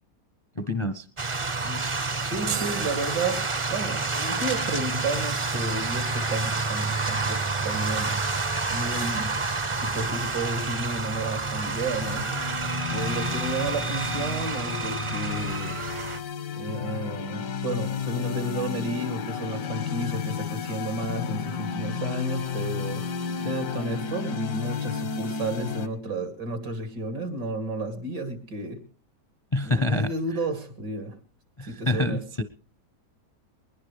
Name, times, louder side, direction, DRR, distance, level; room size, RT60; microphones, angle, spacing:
voice 1, 0.6-1.1 29.5-30.1 31.6-32.4, left 2 dB, 35° left, 9 dB, 0.4 m, -26 dB
snowmobiles pull up nearby and drive around, 1.2-16.2, right 3 dB, 40° right, 0.4 m, -29 dB
voice 2, 2.2-3.4 3.7-8.1 8.7-9.3 9.7-12.3 12.9-15.8 16.5-23.0 23.4-28.8 29.6-31.2 31.6-32.2, right 2 dB, 90° right, 6 dB, 3.2 m, -32 dB
sound 1, 2.5-4.0, right 7 dB, 65° right, 1.4 m, -36 dB
sound 2, 12.0-25.9, left 6 dB, 85° left, 1.8 m, -32 dB
21.0 x 20.5 x 3.3 m, 0.41 s
omnidirectional pair, 1.8 m